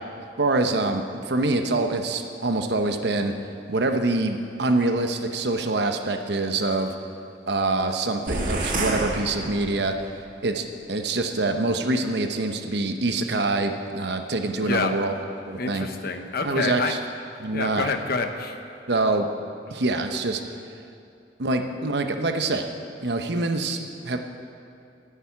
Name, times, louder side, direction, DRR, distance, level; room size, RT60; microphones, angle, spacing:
voice 1, 0.4-3.3 3.7-6.9 7.5-10.1 10.4-15.1 15.4-15.9 16.4-17.0 17.4-17.9 18.9-19.3 19.7-20.4 21.4-22.6 23.0-24.2, right 2 dB, 65° right, 6 dB, 0.9 m, -25 dB
sound 1, 8.3-10.1, right 2 dB, 50° right, 1.7 m, -28 dB
voice 2, 14.6-14.9 15.6-16.9 17.5-18.6, left 4 dB, 55° left, 6 dB, 0.9 m, -27 dB
10.5 x 8.4 x 8.5 m, 2.6 s
head